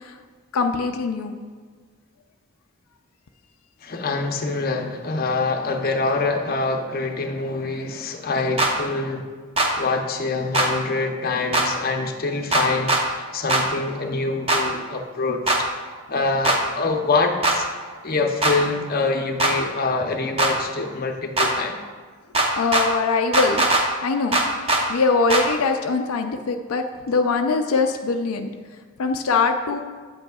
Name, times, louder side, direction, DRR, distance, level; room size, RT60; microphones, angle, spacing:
voice 1, 0.5-1.3 22.6-23.6 24.0-24.4 24.9-28.5 29.0-29.8, left 4 dB, 85° left, 5 dB, 0.4 m, -22 dB
voice 2, 3.8-9.2 9.8-15.7 16.1-17.7 18.0-21.8, left 3 dB, 45° left, 3 dB, 0.7 m, -25 dB
sound 1, 8.6-8.7 9.6-9.7 10.5-10.7 11.5-11.7 12.5-13.0 13.5-13.6 14.5-14.6 15.5-15.6 16.4-16.6 17.4-17.6 18.4-18.6 19.4-19.5 20.4-20.5 21.4-21.5 22.3-22.9 23.3-23.8 24.3-24.8 25.3-25.4, right 2 dB, 25° right, 0.7 m, -19 dB
8.8 x 8.0 x 2.3 m, 1.5 s
head